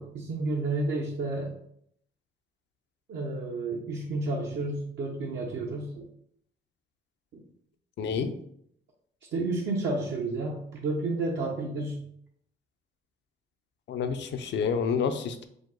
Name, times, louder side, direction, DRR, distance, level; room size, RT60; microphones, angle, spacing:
voice 1, 0.0-1.5 3.1-6.1 7.3-7.4 9.3-12.0, right 2 dB, 65° right, -1 dB, 0.7 m, -31 dB
voice 2, 8.0-8.3 13.9-15.5, left 6 dB, 65° left, 8 dB, 0.5 m, -29 dB
4.9 x 2.0 x 3.8 m, 0.69 s
cardioid pair, 90°, 20 cm